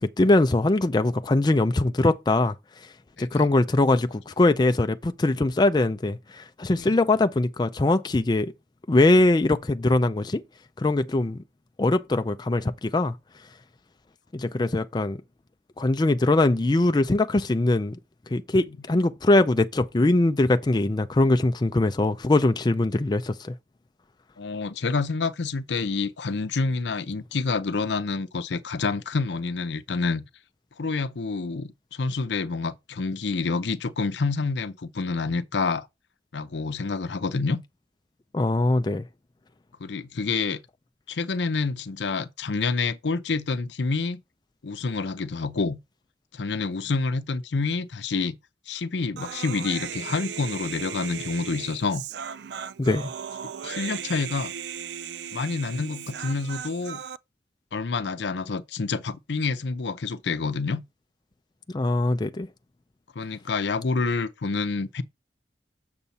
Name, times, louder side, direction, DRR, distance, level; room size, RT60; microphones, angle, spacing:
voice 1, 0.0-2.5 3.2-8.5 8.9-10.4 10.8-11.4 11.8-13.1 14.3-15.2 15.8-18.0 18.3-23.5 38.3-39.0 52.8-53.1 61.7-62.5, left 2 dB, 25° left, 0.4 m, -22 dB
voice 2, 24.4-30.2 30.8-35.9 36.3-37.6 39.8-40.6 41.1-44.2 44.6-45.8 46.3-48.4 48.7-52.0 53.6-54.5 55.3-57.0 57.7-60.8 63.2-65.0, left 4 dB, 70° left, 0.6 m, -28 dB
Human voice, 49.2-57.2, right 8 dB, 65° right, 0.4 m, -36 dB
7.0 x 6.8 x 4.1 m
head